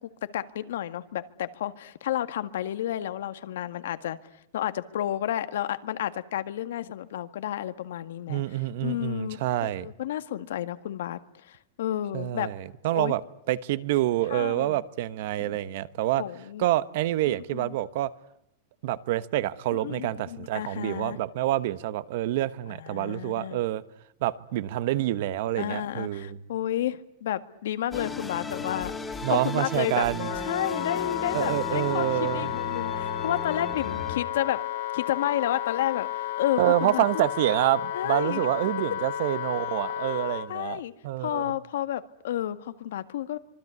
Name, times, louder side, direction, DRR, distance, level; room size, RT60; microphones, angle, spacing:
voice 1, 0.0-4.2 4.5-8.4 8.8-12.5 12.9-13.1 14.3-14.8 15.4-15.6 16.2-16.7 17.3-17.7 19.7-21.2 22.7-23.6 25.6-30.0 30.4-34.6 34.9-37.3 37.9-38.5 40.5-40.9 41.2-43.4, left 12 dB, 85° left, 1.7 m, -31 dB
voice 2, 8.3-9.9 12.1-13.2 13.5-16.2 16.6-18.1 18.8-23.8 24.2-26.4 29.2-30.3 31.3-32.5 36.6-41.5, right 14 dB, 50° right, 1.1 m, -27 dB
sound 1, 27.9-34.2, left 2 dB, 5° left, 2.3 m, -36 dB
Wind instrument woodwind instrument, 30.2-40.5, left 12 dB, 55° left, 2.0 m, -32 dB
26.0 x 23.0 x 9.6 m
supercardioid pair, 175°, 0 cm